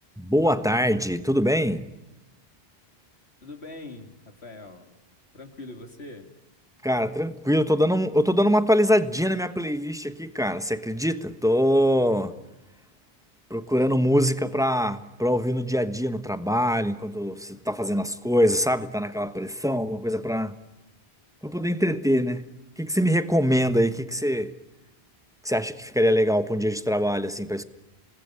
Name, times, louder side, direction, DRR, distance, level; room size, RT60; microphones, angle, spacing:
voice 1, 0.2-1.9 6.8-12.3 13.5-20.6 21.4-22.4 22.8-24.5 25.4-27.6, equal, 5° right, 1.2 m, -23 dB
voice 2, 3.4-4.9 5.3-6.3, left 2 dB, 90° left, 3.2 m, -42 dB
28.0 x 19.5 x 9.7 m
omnidirectional pair, 1.1 m